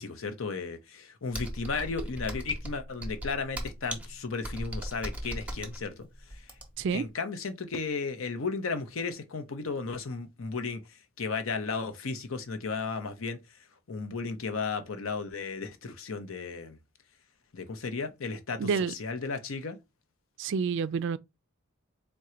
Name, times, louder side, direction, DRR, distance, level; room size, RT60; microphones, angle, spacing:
voice 1, 0.0-6.5 6.9-13.4 13.9-16.8 17.5-19.8, left 4 dB, 75° left, 0.7 m, -34 dB
Computer keyboard, 1.3-6.9, right 1 dB, 5° right, 0.7 m, -38 dB
voice 2, 18.6-18.9 20.4-21.2, right 6 dB, 60° right, 0.3 m, -28 dB
3.7 x 2.2 x 4.3 m
head